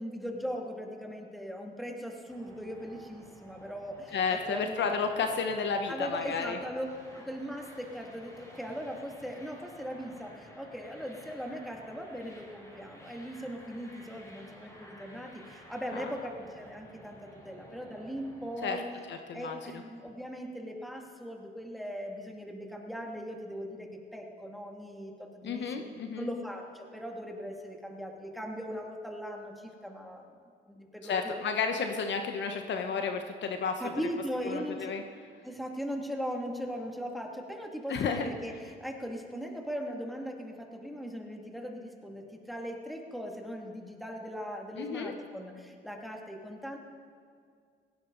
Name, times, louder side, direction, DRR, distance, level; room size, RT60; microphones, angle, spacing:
voice 1, 0.0-4.8 5.9-6.9 7.1-18.8 19.3-25.7 26.2-30.3 30.7-31.3 33.8-34.9 35.4-46.8, equal, ahead, 1 dB, 2.4 m, -39 dB
sound 1, 2.3-18.7, equal, 15° left, 4.3 m, -53 dB
voice 2, 4.1-6.6 15.9-16.1 18.6-18.8 19.1-19.8 25.4-26.3 31.1-33.8 34.4-35.0 37.9-38.3 44.7-45.1, left 5 dB, 60° left, 5 dB, 1.2 m, -32 dB
17.5 x 16.0 x 4.1 m, 2.1 s
supercardioid pair, 75°, 21 cm